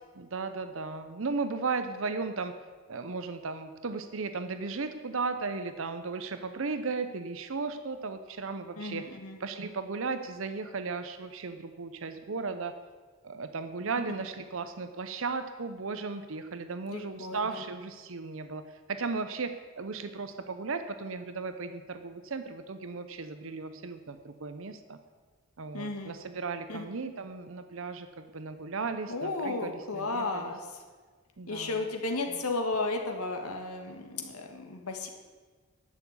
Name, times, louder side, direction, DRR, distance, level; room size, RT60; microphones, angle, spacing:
voice 1, 0.2-2.5 2.9-9.1 9.4-12.7 13.2-18.6 18.9-25.0 25.6-30.5 31.4-31.9, right 4 dB, 65° right, 9 dB, 0.7 m, -36 dB
voice 2, 8.8-9.4 16.9-17.6 25.7-26.1 26.7-26.9 29.1-30.6 31.5-35.1, left 3 dB, 90° left, 4 dB, 1.7 m, -34 dB
11.0 x 7.0 x 8.3 m, 1.4 s
head